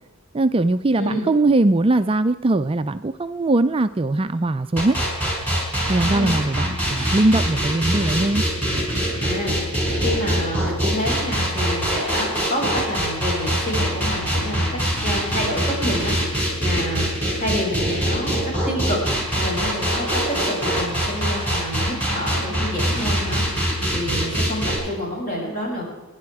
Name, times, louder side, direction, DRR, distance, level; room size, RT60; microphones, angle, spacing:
voice 1, 0.3-5.0 5.9-8.4, right 2 dB, 25° right, 10 dB, 0.4 m, -20 dB
sound 1, 4.8-24.8, equal, 5° left, 5.9 m, -23 dB
voice 2, 6.0-6.4 9.2-14.7 15.0-17.1 17.4-18.4 18.7-19.0 19.4-20.2 20.5-25.8, left 1 dB, 40° left, -2 dB, 7.2 m, -28 dB
27.5 x 10.5 x 4.8 m, 1.2 s
head